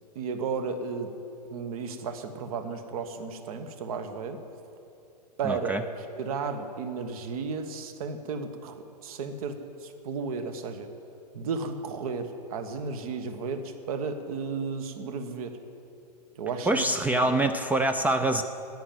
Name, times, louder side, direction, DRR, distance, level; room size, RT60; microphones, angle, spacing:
voice 1, 0.1-1.1 1.5-4.4 5.4-10.9 11.3-15.6 16.4-16.8 17.1-17.4, right 5 dB, 60° right, 8 dB, 1.4 m, -34 dB
voice 2, 5.4-5.8 16.7-18.4, right 2 dB, 10° right, 8 dB, 0.4 m, -25 dB
11.0 x 9.2 x 9.4 m, 2.7 s
hypercardioid pair, 110°, 21 cm